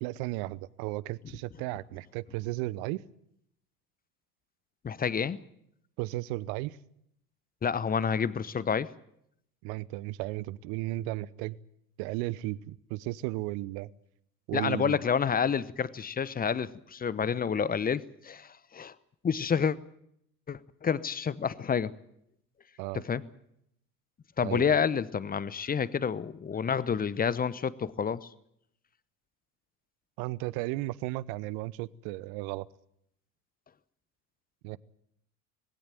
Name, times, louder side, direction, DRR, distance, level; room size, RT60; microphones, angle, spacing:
voice 1, 0.0-3.0 6.0-6.8 9.6-11.6 12.0-13.9 14.5-15.0 22.8-23.0 24.4-24.7 30.2-32.7 34.6-34.8, right 18 dB, 50° right, 22 dB, 0.9 m, -34 dB
voice 2, 4.8-5.4 7.6-8.9 14.5-18.9 19.2-19.8 20.5-21.9 23.0-23.2 24.4-28.3, left 6 dB, 20° left, 19 dB, 0.9 m, -29 dB
20.0 x 17.0 x 9.0 m, 0.75 s
figure-of-eight pair, 75°, 48 cm